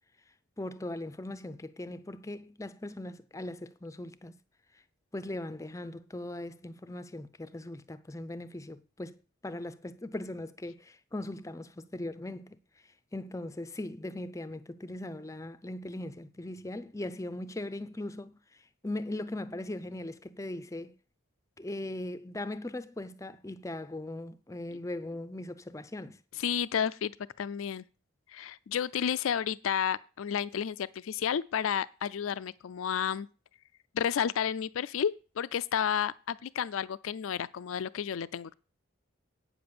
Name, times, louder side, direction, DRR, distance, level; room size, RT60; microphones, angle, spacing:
voice 1, 0.6-4.3 5.1-9.2 9.4-12.6 13.1-20.9 21.6-26.2, left 1 dB, 15° left, 0.5 m, -39 dB
voice 2, 26.4-27.8 28.3-33.3 33.9-38.5, left 8 dB, 80° left, 0.4 m, -31 dB
8.7 x 7.0 x 6.8 m
head